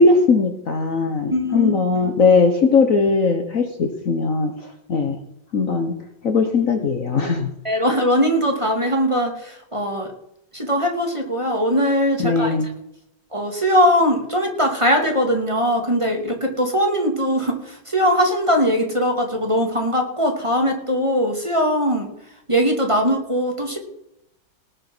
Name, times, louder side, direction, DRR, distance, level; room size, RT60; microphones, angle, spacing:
voice 1, 0.0-4.5 4.9-5.2 5.5-5.9 6.2-7.5 12.2-12.7, left 4 dB, 50° left, 6 dB, 1.4 m, -19 dB
voice 2, 1.3-2.1 7.6-10.1 10.5-12.5 13.3-22.1 22.5-23.8, equal, 15° right, 2 dB, 2.2 m, -20 dB
18.5 x 6.6 x 6.1 m, 0.80 s
omnidirectional pair, 2.0 m